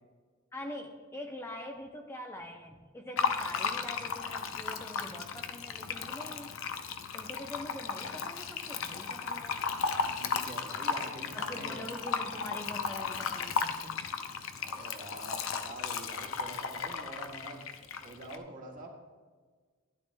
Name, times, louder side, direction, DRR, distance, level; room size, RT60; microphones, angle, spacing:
voice 1, 0.5-6.5 7.1-9.6 11.3-14.0, left 1 dB, 15° left, 2 dB, 0.6 m, -44 dB
Fill (with liquid), 3.2-18.4, left 5 dB, 85° left, 0.6 m, -35 dB
voice 2, 10.1-11.9 14.6-17.7 18.0-18.9, right 2 dB, 40° right, 0 dB, 1.5 m, -45 dB
12.0 x 10.5 x 2.2 m, 1.5 s
head